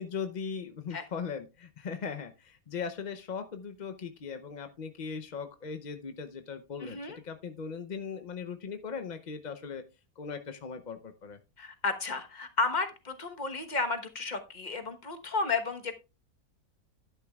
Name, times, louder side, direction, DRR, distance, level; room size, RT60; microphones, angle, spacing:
voice 1, 0.0-9.8 10.2-11.4, left 6 dB, 50° left, 7 dB, 0.5 m, -39 dB
voice 2, 6.8-7.2 11.6-15.9, left 3 dB, 30° left, 6 dB, 1.1 m, -32 dB
11.5 x 10.0 x 2.3 m, 0.27 s
omnidirectional pair, 1.7 m